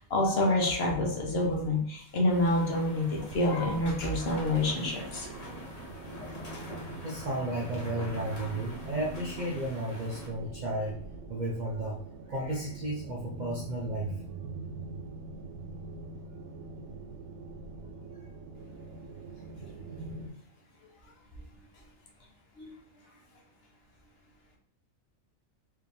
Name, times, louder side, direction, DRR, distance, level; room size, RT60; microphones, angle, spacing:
voice 1, 0.0-5.3 22.6-22.7, left 1 dB, 55° left, -1 dB, 1.1 m, -27 dB
sound 1, 2.3-10.3, left 1 dB, 35° left, 0.8 m, -45 dB
sound 2, 3.3-20.3, right 3 dB, 90° right, 1.0 m, -43 dB
voice 2, 7.0-11.0 11.3-12.0 12.3-14.1 23.0-23.2, right 1 dB, 50° right, -2 dB, 0.5 m, -33 dB
4.6 x 2.9 x 3.4 m, 0.65 s
omnidirectional pair, 1.4 m